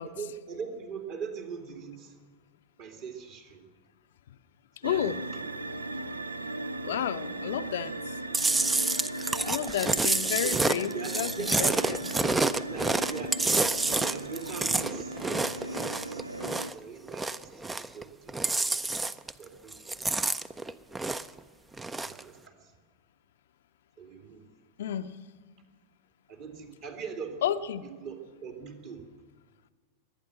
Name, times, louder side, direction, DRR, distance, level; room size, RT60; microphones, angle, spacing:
voice 1, 0.0-2.2 2.8-3.7 4.8-5.0 6.8-7.0 10.4-10.5 10.9-11.5 12.7-16.4 16.7-19.0 19.4-19.9 22.0-22.7 24.0-24.5 26.3-27.5 27.8-29.1, right 6 dB, 45° right, 4 dB, 2.5 m, -42 dB
voice 2, 4.8-5.2 6.8-8.2 9.4-12.1 24.8-25.1 27.4-27.8, left 10 dB, 60° left, 10 dB, 0.6 m, -31 dB
sound 1, 4.8-16.7, right 2 dB, 80° right, 0.5 m, -37 dB
Chewing mastication, 8.3-16.8 17.1-18.0 18.3-19.4 19.7-21.4 21.7-22.2, right 3 dB, 10° right, 0.5 m, -28 dB
23.0 x 9.2 x 6.3 m, 1.5 s
figure-of-eight pair, 90°, 0 cm